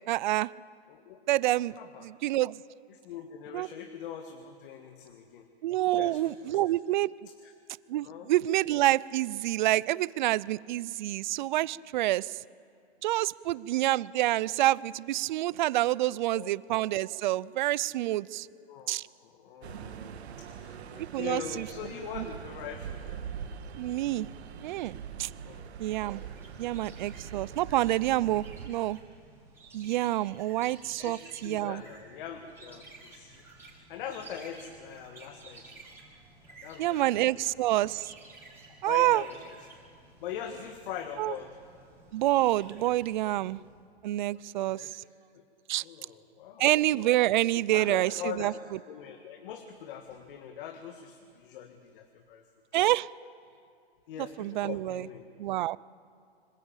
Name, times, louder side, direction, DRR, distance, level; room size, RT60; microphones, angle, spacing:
voice 1, 0.1-0.5 1.3-2.6 3.5-3.7 5.6-7.1 7.9-12.3 13.0-18.5 18.9-19.0 21.0-21.7 22.2-22.3 23.8-24.3 24.6-25.3 25.8-26.3 26.6-29.0 29.7-31.8 36.8-38.1 38.8-39.2 41.2-41.3 42.1-43.6 44.0-44.9 45.7-45.8 46.6-48.5 52.7-53.1 54.4-55.1 55.4-55.8, right 15 dB, 45° right, 22 dB, 0.5 m, -27 dB
voice 2, 1.8-2.1 2.9-5.5 5.9-6.6 7.4-7.5 8.0-8.3 16.1-16.5 18.5-23.2 25.4-25.7 31.0-31.2 31.4-35.8 36.6-37.1 37.4-37.8 38.8-39.5 40.2-41.5 44.3-45.0 45.3-45.4 45.8-46.7 47.7-48.6 48.9-52.4 54.1-55.2, left 8 dB, 50° left, 4 dB, 1.8 m, -42 dB
sound 1, 19.6-28.7, right 7 dB, 70° right, 1.7 m, -43 dB
sound 2, 25.8-43.8, right 3 dB, 5° right, 5.5 m, -53 dB
25.5 x 15.5 x 8.9 m, 2.4 s
hypercardioid pair, 145°, 33 cm